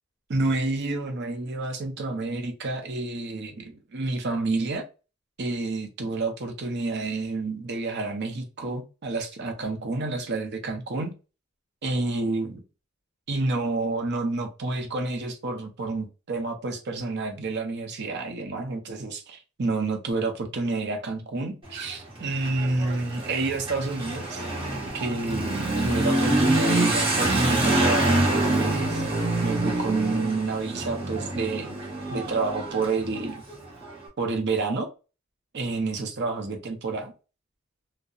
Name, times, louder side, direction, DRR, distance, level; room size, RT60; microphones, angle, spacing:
voice 1, 0.3-4.9 5.4-11.1 11.8-12.6 13.3-24.4 24.9-29.0 29.4-31.8 32.1-33.4 34.2-34.9 35.5-37.1, right 3 dB, 55° right, 0.6 m, -29 dB
Motorcycle / Accelerating revving vroom, 21.6-34.0, right 1 dB, 25° right, 0.9 m, -26 dB
2.7 x 2.0 x 2.3 m
head